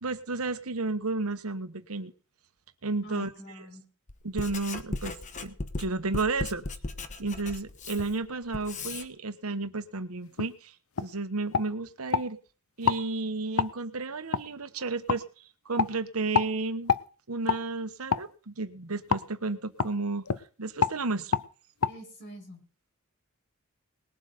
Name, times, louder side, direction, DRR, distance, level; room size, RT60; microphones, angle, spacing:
voice 1, 0.0-2.1 2.8-3.3 4.2-6.6 7.2-10.7 11.0-12.4 12.8-16.9 17.3-20.2 20.6-21.4, right 3 dB, 90° right, 10 dB, 1.2 m, -32 dB
voice 2, 3.0-3.8 21.9-22.6, equal, 55° left, 1 dB, 5.9 m, -45 dB
Writing, 4.1-9.1, left 2 dB, 35° left, 1.1 m, -37 dB
sound 1, 10.4-10.5 11.0-11.1 11.5-12.3 12.8-13.0 13.6-13.7 14.3-14.4 15.1-15.2 15.8-15.9 16.3-16.5 16.9-17.0 17.5-17.6 18.1-18.3 19.1-19.3 19.8-19.9 20.2-20.4 20.8-21.0 21.3-21.5 21.8-21.9, left 6 dB, 75° left, 0.6 m, -26 dB
20.0 x 7.7 x 5.3 m, 0.39 s
head